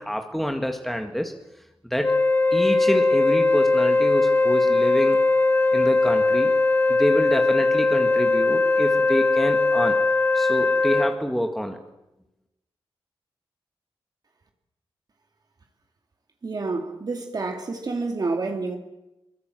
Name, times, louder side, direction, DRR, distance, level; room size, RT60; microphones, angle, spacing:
voice 1, 0.0-1.3 1.9-2.2 2.5-5.2 5.7-6.5 6.9-10.0 10.3-11.8, equal, ahead, 1.8 m, -27 dB
Wind instrument woodwind instrument, 2.0-11.2, left 3 dB, 20° left, 1.2 m, -20 dB
voice 2, 16.4-18.8, right 3 dB, 45° right, 2.6 m, -28 dB
23.0 x 22.0 x 7.7 m
wide cardioid pair, 120°, 9 cm